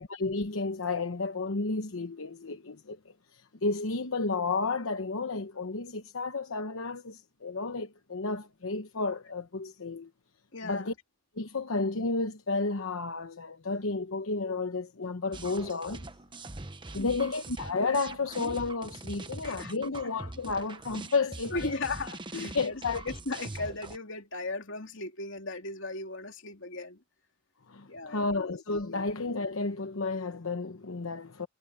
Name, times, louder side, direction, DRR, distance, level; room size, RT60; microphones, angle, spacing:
voice 1, 0.0-3.0 3.3-10.1 10.6-10.9 11.4-16.0 16.9-21.7 22.3-23.0 27.7-31.5, left 3 dB, 90° left, 1.0 m, -32 dB
voice 2, 10.5-10.9 17.0-17.3 19.4-20.0 21.5-27.0 27.9-28.5, left 3 dB, 65° left, 2.9 m, -37 dB
sound 1, 15.3-24.0, right 2 dB, 25° right, 1.1 m, -42 dB
head